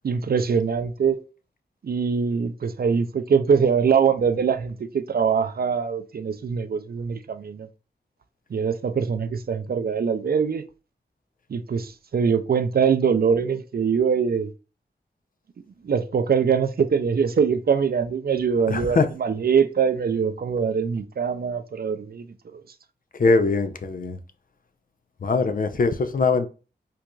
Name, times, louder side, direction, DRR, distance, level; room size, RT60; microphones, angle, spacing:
voice 1, 0.0-1.2 1.8-7.7 8.5-10.6 11.5-14.5 15.8-22.3 22.5-22.6, right 6 dB, 55° right, 0.4 m, -23 dB
voice 2, 18.7-19.1 23.2-24.2 25.2-26.5, left 4 dB, 50° left, 0.5 m, -21 dB
4.5 x 2.6 x 2.3 m
cardioid pair, 55°, 19 cm